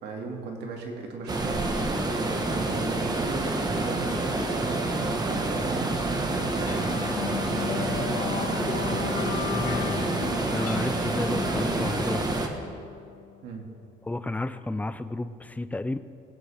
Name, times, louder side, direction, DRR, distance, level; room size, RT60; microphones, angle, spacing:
voice 1, 0.0-1.7 2.4-4.8 5.2-6.9 7.6-8.0 13.4-13.7, right 3 dB, 80° right, 1 dB, 2.2 m, -37 dB
sound 1, 1.3-12.5, right 2 dB, 25° right, 1.4 m, -28 dB
sound 2, 6.7-13.5, left 11 dB, 55° left, 0.6 m, -36 dB
voice 2, 9.5-10.1 10.5-12.5 14.1-16.0, left 2 dB, 10° left, 12 dB, 0.5 m, -32 dB
20.0 x 9.7 x 3.5 m, 2.4 s
cardioid pair, 110°, 17 cm